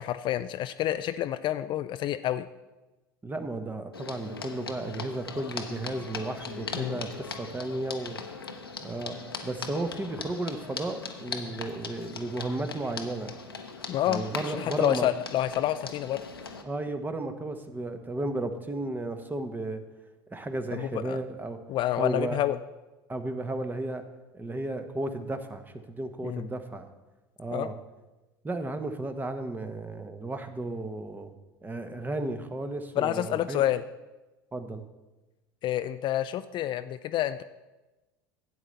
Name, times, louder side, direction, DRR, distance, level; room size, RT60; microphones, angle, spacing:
voice 1, 0.0-2.5 6.7-7.0 13.9-16.2 20.7-21.2 21.7-22.6 26.2-26.4 27.5-27.7 33.0-33.8 35.6-37.4, left 12 dB, 40° left, 11 dB, 0.4 m, -28 dB
voice 2, 3.2-8.2 8.8-9.2 9.4-13.3 14.1-15.1 16.6-19.8 20.3-21.6 22.0-22.4 23.1-24.0 24.3-26.9 27.4-27.7 28.4-31.3 31.6-33.6 34.5-34.8, right 2 dB, 15° right, 8 dB, 1.1 m, -34 dB
sound 1, 3.9-16.6, left 4 dB, 90° left, 0.9 m, -40 dB
12.0 x 8.4 x 4.1 m, 1.1 s
figure-of-eight pair, 70°, 12 cm